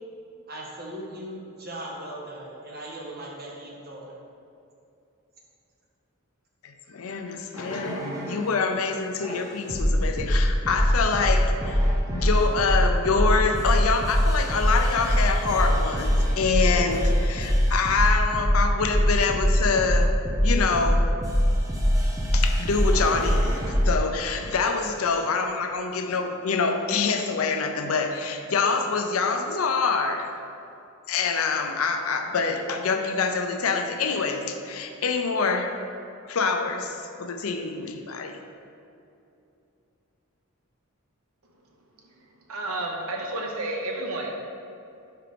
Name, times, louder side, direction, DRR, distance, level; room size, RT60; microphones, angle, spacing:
voice 1, 0.5-4.1, right 1 dB, 45° right, -3 dB, 1.2 m, -38 dB
voice 2, 6.6-20.2 20.4-21.1 22.3-30.3 31.1-35.7 36.2-38.4, left 4 dB, 75° left, 5 dB, 0.6 m, -26 dB
sound 1, 7.6-8.6 9.2-23.9 24.6-25.0, equal, 15° right, 0.8 m, -23 dB
voice 3, 42.5-44.4, right 2 dB, 75° right, 1 dB, 0.9 m, -31 dB
4.9 x 4.5 x 5.0 m, 2.7 s
head